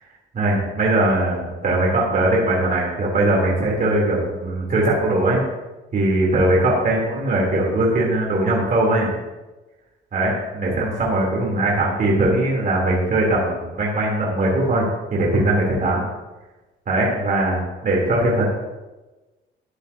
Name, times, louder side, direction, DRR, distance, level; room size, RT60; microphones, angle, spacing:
voice 1, 0.3-5.4 5.9-9.1 10.1-16.0 16.9-18.4, right 1 dB, 45° right, -3 dB, 3.2 m, -20 dB
13.5 x 11.0 x 2.8 m, 1.1 s
cardioid pair, 90°, 20 cm